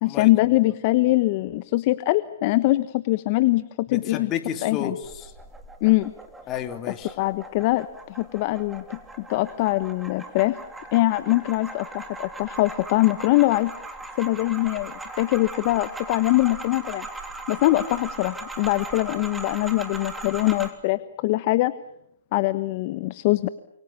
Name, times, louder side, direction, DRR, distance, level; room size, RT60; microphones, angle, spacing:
voice 1, 0.0-4.3 4.6-4.9 5.8-6.1 7.2-10.6 10.9-13.7 14.2-17.1 17.5-21.7 22.3-23.5, left 19 dB, 45° left, 14 dB, 1.1 m, -23 dB
voice 2, 3.9-5.3 6.5-7.1, left 9 dB, 25° left, 7 dB, 3.0 m, -31 dB
sound 1, 5.0-20.7, right 2 dB, 5° right, 3.4 m, -39 dB
29.0 x 27.5 x 7.1 m, 0.78 s
hypercardioid pair, 135°, 0 cm